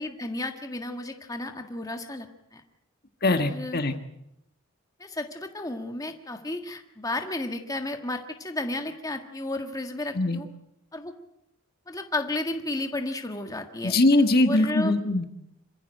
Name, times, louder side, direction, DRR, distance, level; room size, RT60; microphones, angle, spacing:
voice 1, 0.0-2.6 3.3-3.8 5.0-10.5 10.9-11.1 11.9-13.9 14.4-14.9, left 2 dB, 15° left, 5 dB, 1.7 m, -33 dB
voice 2, 3.2-4.0 10.1-10.4 13.8-15.5, left 2 dB, 45° left, 8 dB, 1.6 m, -22 dB
27.0 x 15.0 x 9.1 m, 0.81 s
head